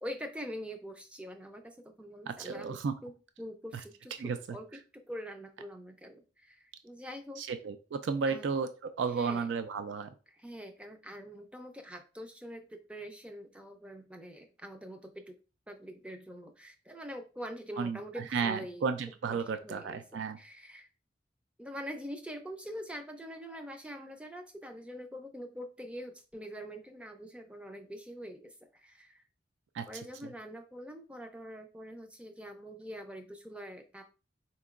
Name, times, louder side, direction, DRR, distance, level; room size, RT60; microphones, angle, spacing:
voice 1, 0.0-7.5 8.3-8.5 9.2-9.5 10.3-15.4 15.7-18.8 19.3-20.9 21.6-29.2 29.9-34.2, equal, 5° right, 5 dB, 0.4 m, -44 dB
voice 2, 2.3-2.9 4.2-4.6 7.4-10.1 17.8-20.4 29.7-29.8, right 5 dB, 80° right, 9 dB, 0.3 m, -33 dB
4.4 x 2.9 x 2.4 m, 0.34 s
head